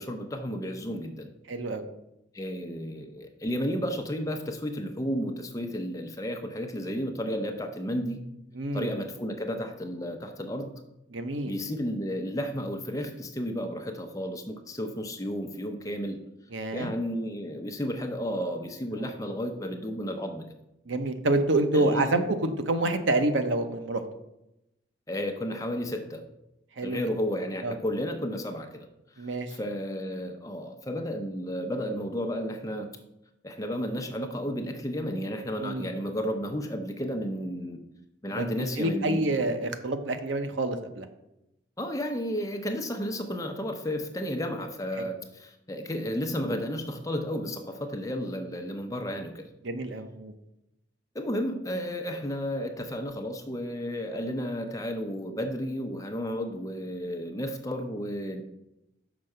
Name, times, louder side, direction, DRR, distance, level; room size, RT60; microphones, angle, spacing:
voice 1, 0.0-1.3 2.3-8.3 8.7-10.7 11.4-16.2 16.7-20.4 21.7-22.1 25.1-26.2 26.8-28.9 29.1-32.9 33.4-37.8 38.2-39.3 41.8-49.5 51.1-58.4, equal, 15° left, 4 dB, 0.7 m, -32 dB
voice 2, 1.5-1.8 8.5-8.9 11.1-11.5 16.5-16.9 18.9-19.1 20.9-24.0 26.8-27.0 27.6-27.8 29.2-29.6 35.6-35.9 38.3-38.5 38.8-41.1 49.6-50.3, right 2 dB, 75° right, 8 dB, 0.8 m, -27 dB
6.0 x 4.7 x 6.5 m, 0.87 s
head